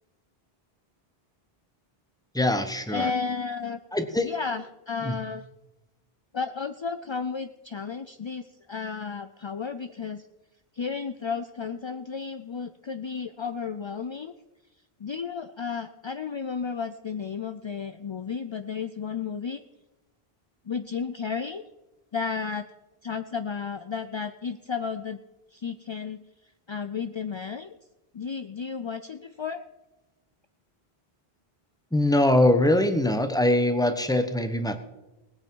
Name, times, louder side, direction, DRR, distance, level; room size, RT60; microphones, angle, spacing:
voice 1, 2.3-3.1 3.9-4.3 5.0-5.1 31.9-34.8, left 1 dB, 5° left, 8 dB, 0.9 m, -22 dB
voice 2, 2.9-3.8 4.2-5.5 6.3-10.3 10.7-14.3 15.0-19.6 20.7-21.6 22.1-22.7 23.0-25.2 25.5-26.2 26.7-27.8 28.1-29.6, left 5 dB, 45° left, 9 dB, 0.4 m, -33 dB
19.5 x 8.6 x 4.6 m, 1.0 s
omnidirectional pair, 1.0 m